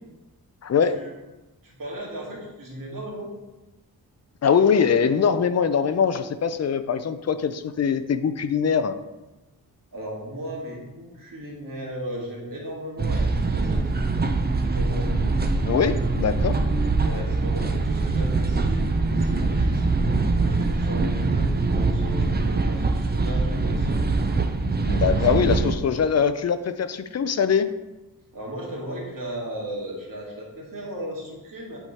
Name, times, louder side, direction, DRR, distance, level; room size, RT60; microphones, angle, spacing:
voice 1, 0.6-1.0 4.4-9.0 15.6-16.6 24.8-27.7, left 6 dB, 45° left, 11 dB, 0.4 m, -22 dB
voice 2, 1.6-3.3 9.9-13.8 14.6-15.1 17.0-19.8 20.4-24.0 24.9-25.7 28.3-31.8, right 1 dB, 60° right, -4 dB, 2.1 m, -36 dB
sound 1, 13.0-25.7, right 3 dB, 25° right, 0.5 m, -23 dB
8.2 x 3.6 x 4.1 m, 1.1 s
wide cardioid pair, 95°, 37 cm